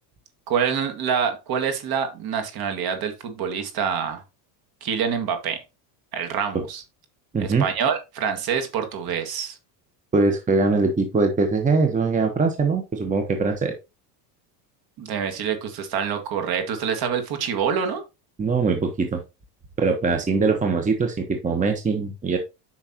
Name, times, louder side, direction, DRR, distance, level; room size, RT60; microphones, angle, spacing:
voice 1, 0.5-4.2 4.8-5.6 6.1-6.8 7.4-9.6 15.0-18.0, right 7 dB, 45° right, 2.1 m, -26 dB
voice 2, 7.3-7.7 10.1-13.7 18.4-19.2 19.8-22.4, right 4 dB, 15° right, 1.1 m, -22 dB
8.9 x 5.8 x 2.9 m
supercardioid pair, 125°, 49 cm